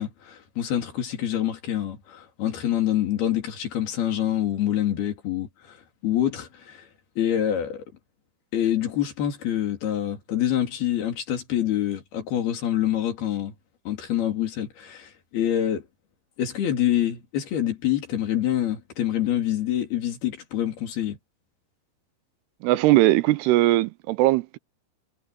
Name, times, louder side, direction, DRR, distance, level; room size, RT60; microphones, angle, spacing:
voice 1, 0.0-6.9 7.2-7.8 8.5-13.5 13.9-15.9 16.4-21.2, left 11 dB, 70° left, 4.9 m, -26 dB
voice 2, 22.6-24.6, right 16 dB, 85° right, 2.7 m, -20 dB
omnidirectional pair, 4.7 m